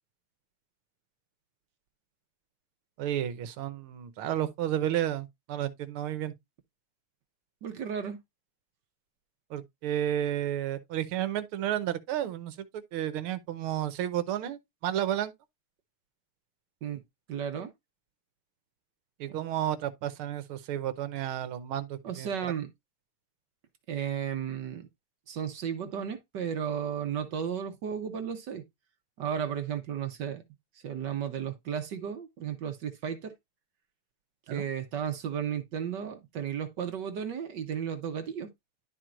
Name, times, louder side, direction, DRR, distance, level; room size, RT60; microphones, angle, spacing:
voice 1, 3.0-6.3 9.5-15.3 19.2-22.5 34.5-34.6, right 11 dB, 85° right, 1.7 m, -32 dB
voice 2, 7.6-8.2 16.8-17.0 17.3-17.7 19.3-19.4 22.0-22.7 23.9-24.9 25.3-28.6 29.2-30.4 30.8-33.3 34.5-38.5, right 8 dB, 60° right, 1.4 m, -34 dB
11.5 x 4.5 x 2.4 m
omnidirectional pair, 2.4 m